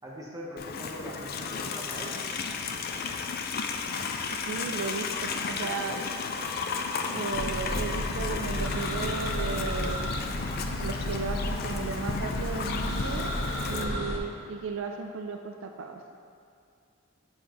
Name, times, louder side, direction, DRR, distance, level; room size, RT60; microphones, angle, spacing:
voice 1, 0.0-2.2 13.7-14.1, equal, 20° right, -4 dB, 0.9 m, -41 dB
Livestock farm animals working animals, 0.6-13.8, left 5 dB, 50° left, 0.4 m, -34 dB
voice 2, 4.3-6.0 7.1-10.0 10.8-13.3 13.7-16.0, right 5 dB, 70° right, 4 dB, 0.3 m, -35 dB
sound 1, 7.3-14.2, left 1 dB, 70° left, 0.7 m, -32 dB
7.1 x 5.5 x 2.9 m, 2.4 s
head